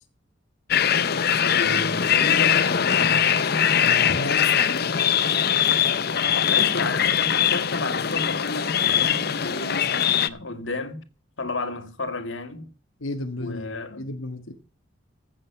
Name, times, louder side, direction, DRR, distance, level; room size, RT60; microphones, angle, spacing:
sound 1, 0.7-10.3, left 8 dB, 50° left, 0.7 m, -21 dB
voice 1, 1.4-3.3 6.4-11.0 11.4-12.7 13.4-14.0, left 3 dB, 70° left, 1.9 m, -32 dB
voice 2, 3.8-4.9 13.0-13.7 14.0-14.5, left 2 dB, 90° left, 1.4 m, -33 dB
15.5 x 7.8 x 5.7 m
head